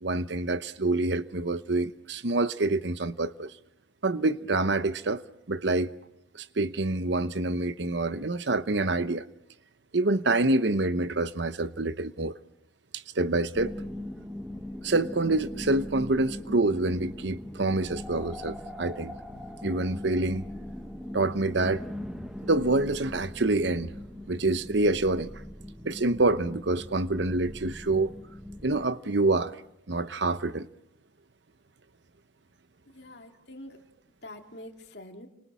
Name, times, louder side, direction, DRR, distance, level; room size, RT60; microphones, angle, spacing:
voice 1, 0.0-3.5 4.0-5.9 6.3-9.3 9.9-12.4 12.9-13.7 14.8-19.1 19.6-20.5 21.1-21.8 22.4-23.9 24.3-25.3 25.8-28.1 28.6-29.6 29.9-30.7, right 2 dB, 60° right, 0.9 m, -27 dB
sound 1, 13.5-28.9, left 1 dB, 5° right, 1.0 m, -40 dB
voice 2, 32.9-33.8 34.2-35.3, left 1 dB, 55° left, 2.6 m, -45 dB
29.5 x 26.5 x 6.2 m
head